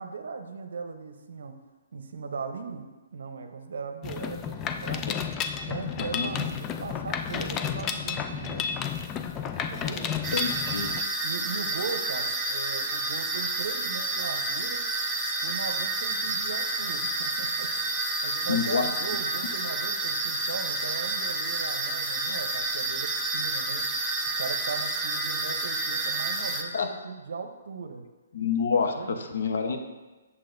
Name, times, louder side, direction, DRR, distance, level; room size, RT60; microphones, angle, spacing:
voice 1, 0.0-1.6 1.9-5.0 5.6-8.7 9.7-10.1 11.2-14.8 15.4-23.9 24.4-28.1 28.9-29.2, right 5 dB, 75° right, 6 dB, 0.7 m, -38 dB
Mechanisms, 4.0-11.0, left 7 dB, 20° left, 0.4 m, -32 dB
sound 1, 10.2-26.6, right 2 dB, 5° right, 0.8 m, -30 dB
voice 2, 10.3-10.9 18.5-18.9 26.7-26.9 28.3-29.8, left 5 dB, 65° left, 5 dB, 0.9 m, -27 dB
8.6 x 7.2 x 2.6 m, 1.2 s
hypercardioid pair, 150°, 0 cm